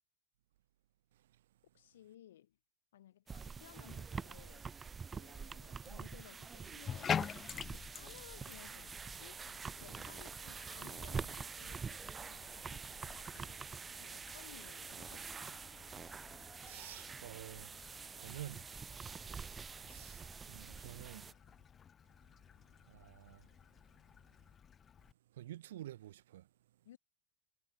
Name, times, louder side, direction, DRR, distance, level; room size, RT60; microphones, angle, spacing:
voice 1, 1.7-2.6 2.9-4.7 5.1-9.4 9.8-13.7 14.0-15.7 26.8-27.0, left 12 dB, 85° left, 4.1 m, -59 dB
sound 1, 3.3-21.3, right 5 dB, 20° right, 1.0 m, -46 dB
Bathtub (filling or washing), 6.8-25.1, left 7 dB, 25° left, 1.0 m, -47 dB
voice 2, 16.6-17.7 18.2-18.6 19.9-21.2 22.9-23.4 25.4-26.4, right 13 dB, 85° right, 0.4 m, -49 dB
supercardioid pair, 115°, 0 cm